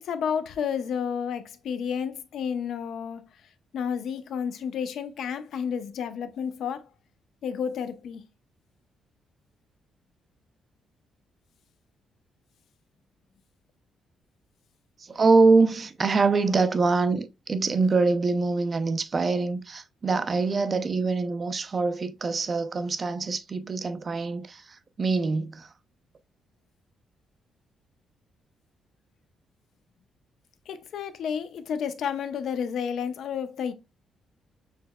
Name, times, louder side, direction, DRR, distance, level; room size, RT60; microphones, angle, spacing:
voice 1, 0.0-3.2 3.7-6.8 7.4-8.2 30.7-33.7, left 7 dB, 65° left, 0.6 m, -31 dB
voice 2, 15.0-25.7, right 3 dB, 30° right, 0.4 m, -24 dB
6.7 x 3.0 x 2.2 m
cardioid pair, 170°, 0 cm